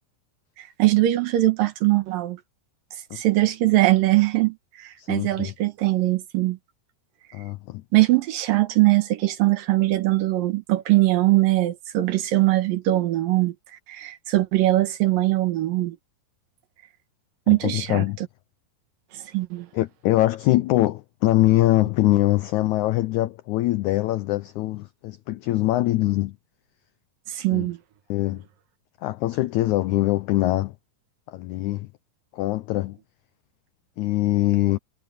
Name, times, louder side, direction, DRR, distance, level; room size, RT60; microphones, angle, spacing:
voice 1, 0.6-2.4 3.1-6.6 7.9-13.5 13.9-16.0 17.5-18.0 19.3-19.7 27.3-27.8, right 17 dB, 75° right, 2.9 m, -21 dB
voice 2, 5.0-5.5 7.3-7.8 17.5-18.2 19.7-26.4 27.5-27.7 28.1-28.4 29.0-30.7 31.3-31.9 32.3-33.0 34.0-34.8, left 16 dB, 90° left, 1.6 m, -23 dB
omnidirectional pair, 4.2 m